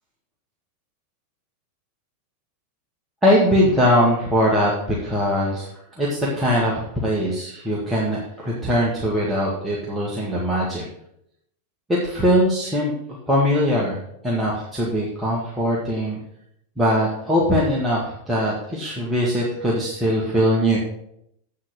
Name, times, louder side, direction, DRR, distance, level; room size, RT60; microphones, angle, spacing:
voice 1, 3.2-5.7 6.0-10.8 11.9-12.9 13.3-14.0 14.2-16.2 16.8-20.8, equal, 10° right, -5 dB, 1.9 m, -21 dB
8.2 x 4.7 x 6.5 m, 0.75 s
figure-of-eight pair, 90°, 0 cm